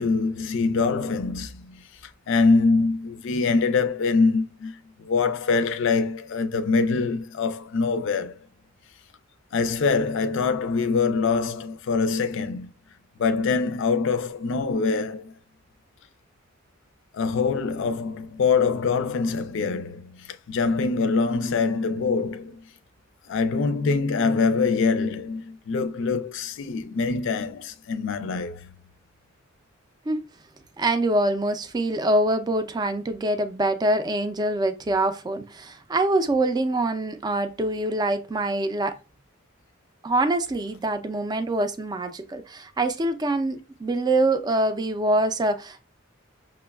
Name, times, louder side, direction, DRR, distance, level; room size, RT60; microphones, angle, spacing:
voice 1, 0.0-1.9 2.3-8.4 9.5-12.7 13.2-15.3 17.1-22.6 23.3-28.7, left 4 dB, 65° left, 0.4 m, -24 dB
voice 2, 30.8-39.0 40.0-45.8, right 1 dB, 20° right, 0.4 m, -24 dB
5.9 x 2.2 x 2.3 m
head